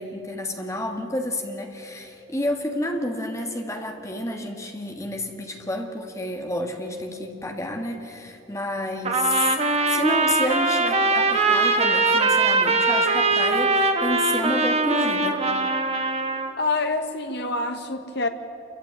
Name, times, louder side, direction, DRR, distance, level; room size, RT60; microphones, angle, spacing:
voice 1, 0.0-9.6 9.9-15.5, left 1 dB, 15° left, 1.6 m, -30 dB
Trumpet, 9.1-16.5, right 3 dB, 30° right, 1.5 m, -21 dB
voice 2, 16.6-18.3, left 3 dB, 55° left, 1.5 m, -26 dB
27.5 x 14.5 x 9.0 m
head